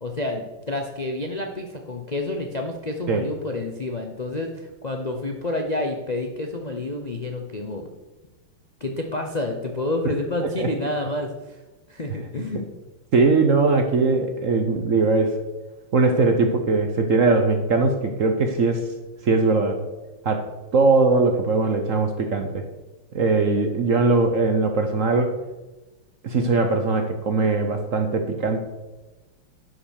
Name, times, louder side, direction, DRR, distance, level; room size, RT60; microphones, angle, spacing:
voice 1, 0.0-7.9 8.8-11.6 11.9-12.6, left 2 dB, 50° left, 3 dB, 0.5 m, -29 dB
voice 2, 13.1-15.4 15.9-18.8 19.2-19.8 20.2-22.6 23.1-25.3 26.2-28.6, right 3 dB, 50° right, 6 dB, 1.0 m, -20 dB
11.0 x 6.0 x 6.5 m, 1.1 s
omnidirectional pair, 2.3 m